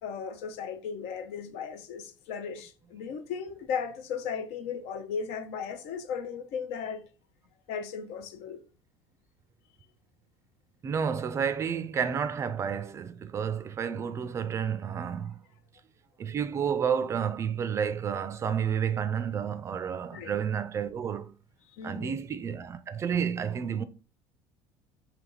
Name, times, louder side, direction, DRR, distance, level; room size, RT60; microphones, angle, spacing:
voice 1, 0.0-7.0 7.7-8.6 20.1-20.4 21.7-22.1, left 6 dB, 90° left, 0.7 m, -36 dB
voice 2, 10.8-15.4 16.2-21.3 21.8-23.8, right 7 dB, 30° right, 0.3 m, -30 dB
3.3 x 2.9 x 3.8 m
cardioid pair, 145°, 10 cm